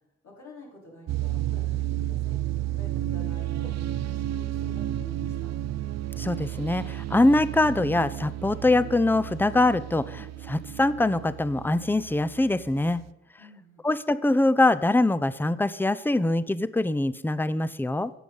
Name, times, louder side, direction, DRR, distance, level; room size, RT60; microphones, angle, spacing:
voice 1, 0.2-2.4 2.6-3.7 4.0-5.5 13.4-13.9, left 1 dB, 75° left, -3 dB, 4.2 m, -49 dB
sound 1, 1.1-13.1, right 13 dB, 60° right, 0.5 m, -32 dB
voice 2, 6.2-13.0 13.8-18.1, left 2 dB, 5° left, 16 dB, 0.6 m, -23 dB
11.5 x 7.8 x 5.4 m, 0.87 s
supercardioid pair, 45°, 29 cm